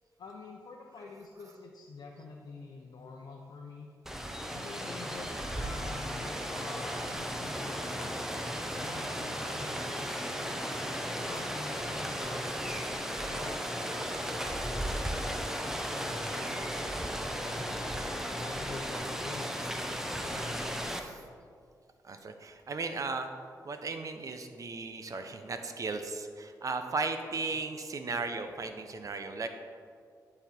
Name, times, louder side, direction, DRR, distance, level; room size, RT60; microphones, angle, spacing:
voice 1, 0.2-3.9 4.5-8.1 8.8-10.7 11.2-14.8 15.1-15.3 15.6-17.6 18.3-21.3 27.5-27.6, left 4 dB, 65° left, -1 dB, 0.8 m, -48 dB
Rain, 4.1-21.0, equal, 5° right, 0.8 m, -35 dB
voice 2, 20.9-21.2 22.0-23.3 23.6-29.5, right 3 dB, 50° right, 7 dB, 0.7 m, -36 dB
10.5 x 4.2 x 4.3 m, 2.2 s
cardioid pair, 75°, 7 cm